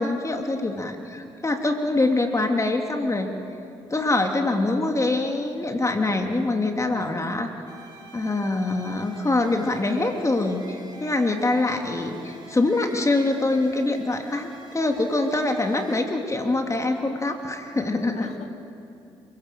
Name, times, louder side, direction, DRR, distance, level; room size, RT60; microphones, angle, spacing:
voice 1, 0.0-3.3 3.9-7.5 8.1-18.3, left 2 dB, 25° left, 4 dB, 2.8 m, -24 dB
sound 1, 7.7-16.1, right 3 dB, 35° right, 4.8 m, -46 dB
voice 2, 15.4-15.9 18.2-18.5, left 7 dB, 65° left, 7 dB, 2.1 m, -45 dB
29.0 x 16.5 x 7.7 m, 2.7 s
hypercardioid pair, 55°, 12 cm